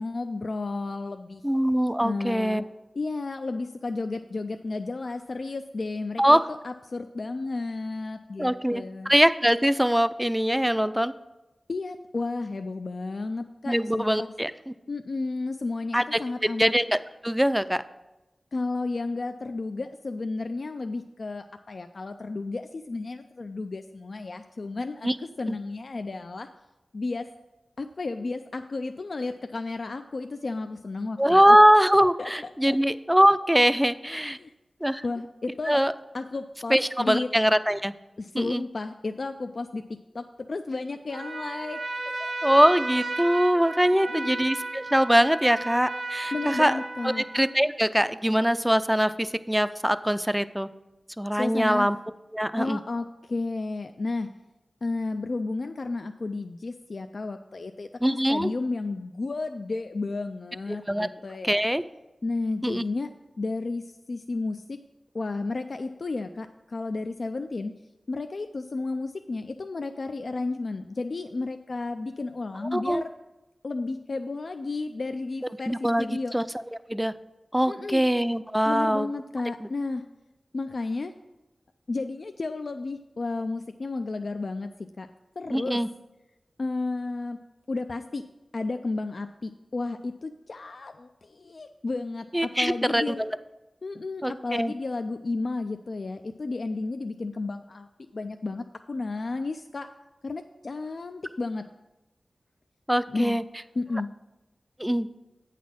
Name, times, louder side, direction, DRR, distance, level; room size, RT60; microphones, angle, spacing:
voice 1, 0.0-1.4 2.0-2.6 2.9-9.1 11.7-14.3 14.9-16.7 18.5-26.5 26.9-27.3 27.8-31.6 32.2-32.3 32.7-32.8 34.4-34.5 35.0-35.8 36.1-37.3 38.2-39.8 40.1-42.3 44.1-44.5 46.3-47.3 51.3-51.9 52.6-54.3 54.8-61.6 62.2-63.1 63.4-64.8 65.1-67.7 68.1-73.1 73.6-76.3 77.7-78.0 78.6-80.0 80.5-81.1 81.9-84.7 85.0-85.1 85.4-85.8 86.6-87.4 87.7-88.2 88.5-93.2 93.8-97.9 98.1-99.9 100.2-101.6 103.1-103.4 103.8-104.1, left 3 dB, 65° left, 7 dB, 0.3 m, -32 dB
voice 2, 1.4-2.6 6.2-6.4 8.4-11.1 13.7-14.5 15.9-16.2 16.6-17.8 25.0-25.2 31.2-34.4 34.8-35.0 35.7-35.9 36.7-37.9 38.3-38.6 42.4-46.7 47.0-50.7 51.2-52.0 52.3-52.8 58.0-58.5 60.9-61.1 61.4-61.8 62.6-62.8 72.7-73.0 75.7-76.4 76.9-77.1 77.5-79.1 85.5-85.9 92.3-93.3 94.2-94.7 102.9-103.4 104.8-105.1, equal, 5° right, 13 dB, 0.4 m, -22 dB
Trumpet, 41.1-47.6, right 2 dB, 75° right, 0.8 m, -34 dB
8.2 x 4.1 x 6.3 m, 1.0 s
cardioid pair, 45°, 0 cm